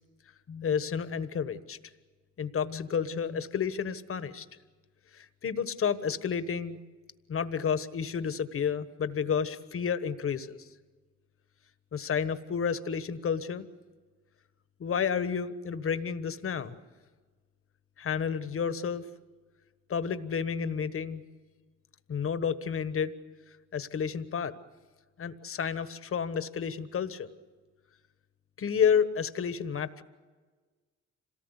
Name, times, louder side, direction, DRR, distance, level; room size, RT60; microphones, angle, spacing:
voice 1, 0.5-1.8 2.4-4.4 5.1-6.8 7.3-10.6 11.9-13.7 14.8-16.7 18.0-19.0 19.9-21.2 22.1-23.1 23.7-24.5 25.2-27.3 28.6-30.0, left 7 dB, 45° left, 12 dB, 1.4 m, -30 dB
26.5 x 18.5 x 8.2 m, 1.4 s
cardioid pair, 90°, 30 cm